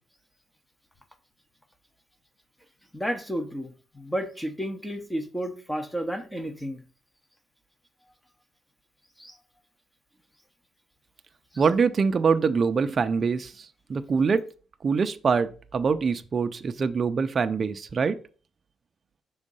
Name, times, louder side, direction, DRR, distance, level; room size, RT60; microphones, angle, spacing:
voice 1, 2.9-6.8 9.2-9.4 11.5-11.6, equal, 5° left, 0.8 m, -32 dB
voice 2, 11.6-14.4 14.8-18.2, right 5 dB, 35° right, 0.4 m, -24 dB
6.3 x 3.6 x 5.3 m
cardioid pair, 145°, 0 cm